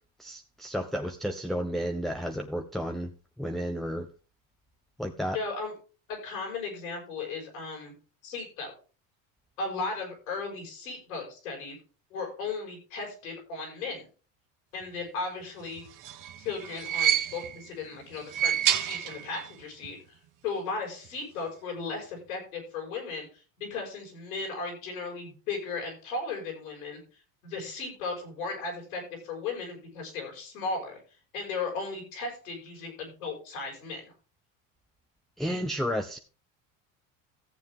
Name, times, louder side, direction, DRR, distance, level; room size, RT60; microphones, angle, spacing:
voice 1, 0.2-3.1 3.4-4.1 5.0-5.4 35.4-36.2, equal, ahead, 2 dB, 0.8 m, -32 dB
voice 2, 5.3-5.7 6.1-7.9 8.2-8.7 9.6-11.8 12.1-14.1 14.7-15.8 16.4-20.2 20.4-27.0 27.4-31.0 31.3-34.0, left 4 dB, 90° left, 1 dB, 5.7 m, -36 dB
sound 1, 15.8-17.7 18.2-19.6 19.8-19.9 21.0-21.1, right 10 dB, 50° right, 1.3 m, -29 dB
14.0 x 7.4 x 3.6 m, 0.36 s
hypercardioid pair, 85°, 40 cm